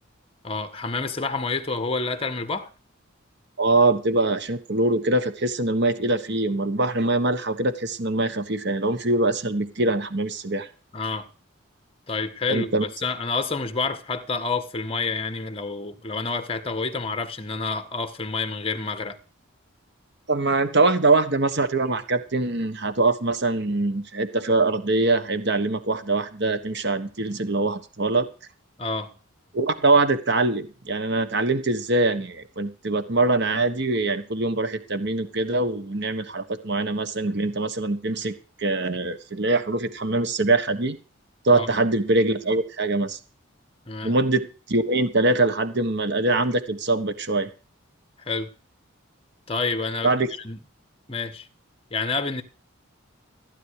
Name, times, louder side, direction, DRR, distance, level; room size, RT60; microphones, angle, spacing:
voice 1, 0.4-2.7 10.9-11.3 12.1-19.2 28.8-29.1 41.5-41.7 43.9-44.1 48.2-48.5 49.5-50.6 51.1-51.5 51.9-52.4, left 3 dB, 25° left, 1.6 m, -28 dB
voice 2, 3.6-10.7 12.5-12.8 20.3-28.3 29.5-41.0 41.4-43.2 44.0-47.5 50.0-50.3, right 2 dB, 55° right, 1.4 m, -23 dB
15.5 x 9.9 x 4.9 m
head